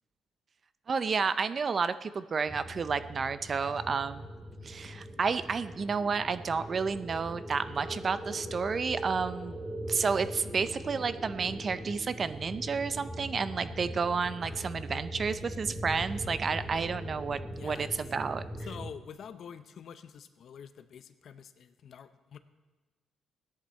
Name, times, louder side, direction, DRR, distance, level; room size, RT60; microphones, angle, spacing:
voice 1, 0.9-4.3 4.6-9.6 9.9-18.4, right 5 dB, 45° right, 13 dB, 0.5 m, -31 dB
sound 1, 2.5-18.9, equal, 10° right, 1.4 m, -41 dB
voice 2, 17.5-17.9 18.6-22.4, left 7 dB, 60° left, 11 dB, 0.8 m, -47 dB
16.0 x 10.5 x 4.3 m, 1.3 s
cardioid pair, 90°, 0 cm